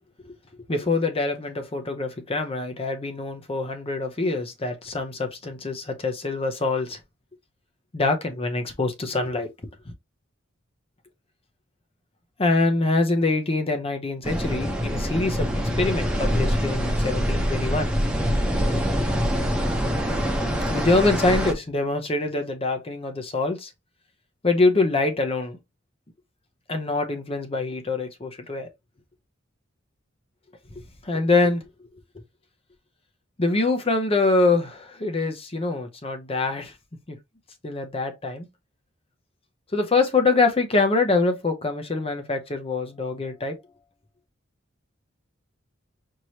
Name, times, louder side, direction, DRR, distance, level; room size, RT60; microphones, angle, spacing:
voice 1, 0.7-7.0 7.9-9.5 9.9-10.0 12.4-17.9 20.7-23.7 24.4-25.6 26.7-28.7 31.0-31.6 33.4-36.7 37.1-37.2 37.6-38.5 39.7-43.6, left 3 dB, 30° left, 0.7 m, -24 dB
sound 1, 14.2-21.5, equal, 5° right, 0.9 m, -24 dB
4.6 x 3.0 x 2.8 m
head